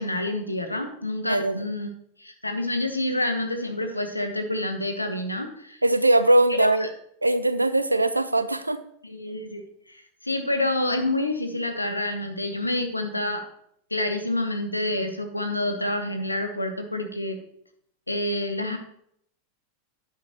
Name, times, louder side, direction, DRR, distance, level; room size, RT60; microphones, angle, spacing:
voice 1, 0.0-1.9 2.2-5.8 6.6-6.9 9.0-9.6 9.9-13.4 13.9-17.4 18.1-18.8, left 1 dB, 85° left, 6 dB, 1.3 m, -28 dB
voice 2, 1.3-1.6 5.8-6.9 7.2-8.8, right 1 dB, 85° right, 13 dB, 0.6 m, -21 dB
10.5 x 8.7 x 3.0 m, 0.70 s
figure-of-eight pair, 90°, 0 cm